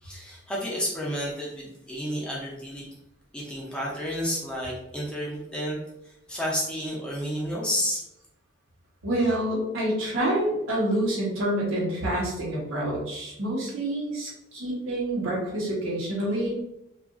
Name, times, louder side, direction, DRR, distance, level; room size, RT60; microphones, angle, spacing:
voice 1, 0.0-2.9 3.3-5.8 6.0-8.0, equal, 5° left, -6 dB, 0.5 m, -31 dB
voice 2, 9.0-16.5, right 1 dB, 85° right, -4 dB, 0.9 m, -27 dB
2.7 x 2.4 x 2.4 m, 0.85 s
head